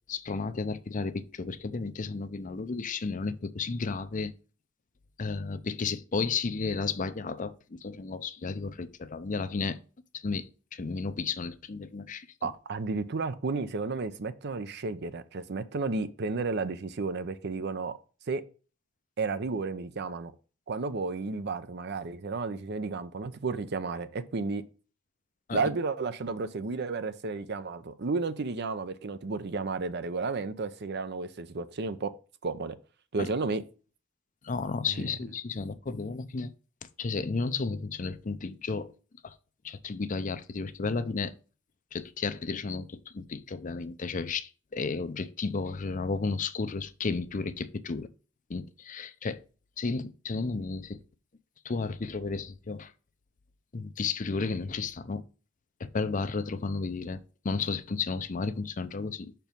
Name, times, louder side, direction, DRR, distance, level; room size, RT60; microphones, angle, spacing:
voice 1, 0.1-4.3 5.2-9.8 10.1-12.5 25.5-25.6 33.2-33.3 34.4-36.5 37.0-38.9 39.2-39.4 39.6-41.3 41.9-48.1 48.5-49.4 49.8-51.0 51.6-52.9 53.7-55.2 55.8-57.2 57.4-59.3, left 4 dB, 40° left, 0.6 m, -33 dB
voice 2, 12.4-18.0 18.3-18.4 19.2-20.3 20.7-24.6 25.5-32.1 32.4-32.8 33.1-33.6 35.0-35.1, right 4 dB, 55° right, 0.6 m, -32 dB
5.9 x 4.6 x 5.1 m
head